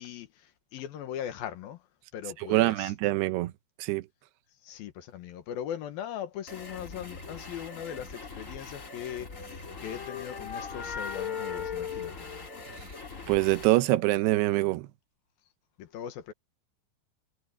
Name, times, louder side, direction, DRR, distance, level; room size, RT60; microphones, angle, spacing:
voice 1, 0.0-1.8 2.1-2.9 4.6-12.3 15.8-16.3, left 10 dB, 70° left, 3.0 m, -40 dB
voice 2, 2.5-3.5 3.8-4.0 13.3-14.9, right 18 dB, 90° right, 2.9 m, -24 dB
sound 1, 6.5-13.7, left 3 dB, 30° left, 1.7 m, -44 dB
sound 2, 9.2-13.1, left 7 dB, 45° left, 4.3 m, -38 dB
omnidirectional pair, 4.6 m